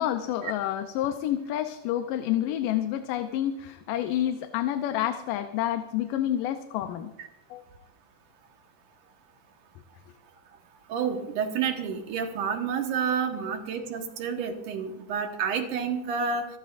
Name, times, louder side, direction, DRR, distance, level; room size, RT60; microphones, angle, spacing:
voice 1, 0.0-7.1 7.5-7.6 13.3-13.5, left 11 dB, 90° left, 8 dB, 2.4 m, -29 dB
voice 2, 10.9-16.5, right 6 dB, 70° right, 4 dB, 2.9 m, -29 dB
27.0 x 12.5 x 2.6 m, 0.91 s
omnidirectional pair, 3.8 m